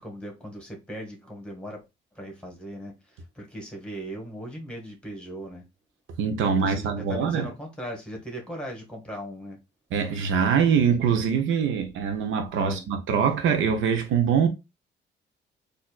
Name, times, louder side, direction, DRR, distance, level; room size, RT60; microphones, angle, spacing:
voice 1, 0.0-1.8 2.1-5.6 6.4-9.6 12.6-12.9, equal, 5° left, 1.5 m, -38 dB
voice 2, 6.2-7.5 9.9-14.5, right 7 dB, 80° right, 0.7 m, -23 dB
4.2 x 2.6 x 2.3 m
cardioid pair, 90°, 20 cm